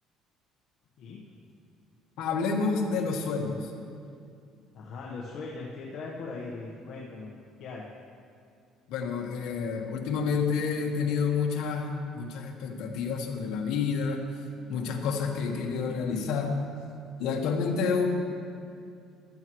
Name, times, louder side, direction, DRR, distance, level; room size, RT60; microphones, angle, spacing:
voice 1, 1.0-1.4 4.7-7.9, left 3 dB, 55° left, -4 dB, 1.2 m, -40 dB
voice 2, 2.2-3.7 8.9-14.2 14.7-16.6 17.2-18.1, left 5 dB, 75° left, 1 dB, 1.4 m, -29 dB
15.0 x 12.5 x 3.1 m, 2.4 s
cardioid pair, 140°, 0 cm